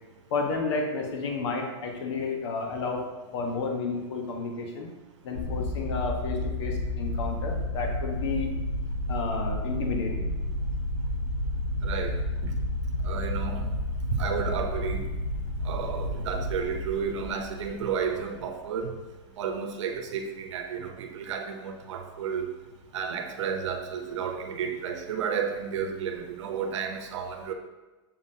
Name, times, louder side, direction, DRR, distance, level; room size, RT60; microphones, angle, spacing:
voice 1, 0.3-3.0 3.3-4.9 5.2-8.5 9.1-10.3, left 4 dB, 70° left, 2 dB, 1.2 m, -31 dB
sound 1, 5.3-18.3, left 1 dB, 85° left, 1.7 m, -31 dB
voice 2, 11.8-12.2 12.4-12.5 13.0-13.7 14.1-15.1 15.6-18.9 19.4-22.4 22.9-27.5, right 6 dB, 80° right, 5 dB, 0.9 m, -32 dB
7.0 x 5.4 x 2.8 m, 1.2 s
supercardioid pair, 155°, 15 cm